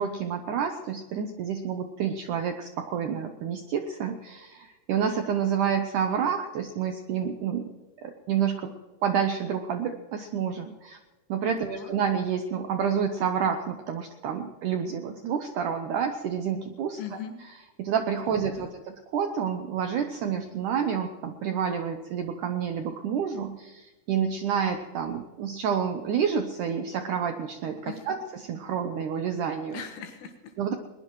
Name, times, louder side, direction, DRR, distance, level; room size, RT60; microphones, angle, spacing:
voice 1, 0.0-7.7 8.0-8.7 9.0-11.0 11.3-17.0 17.8-29.8 30.6-30.8, right 7 dB, 85° right, 6 dB, 1.7 m, -29 dB
voice 2, 11.6-11.9 17.0-17.4 18.2-18.8 27.9-28.0 29.7-30.6, left 8 dB, 85° left, 3 dB, 3.8 m, -40 dB
21.0 x 20.5 x 3.1 m, 1.2 s
omnidirectional pair, 4.8 m